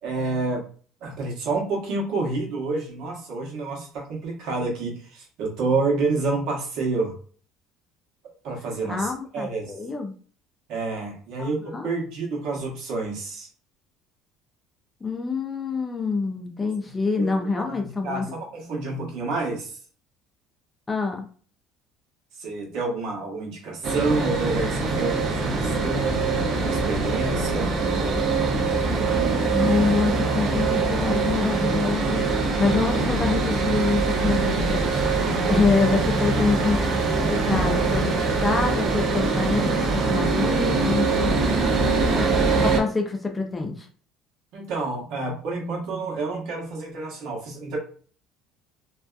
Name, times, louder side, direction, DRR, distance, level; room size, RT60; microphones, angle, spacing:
voice 1, 0.0-0.6 1.0-7.1 8.2-9.7 10.7-13.5 17.2-19.7 22.4-26.2 26.5-27.7 44.5-47.8, right 3 dB, 65° right, -1 dB, 0.9 m, -29 dB
voice 2, 8.9-10.1 11.4-11.9 15.0-18.3 20.9-21.3 29.5-37.0 37.3-41.5 42.6-43.9, left 4 dB, 15° left, 3 dB, 0.4 m, -26 dB
sound 1, 23.8-42.8, right 3 dB, 45° right, 0.5 m, -23 dB
2.6 x 2.2 x 2.3 m, 0.43 s
cardioid pair, 140°, 0 cm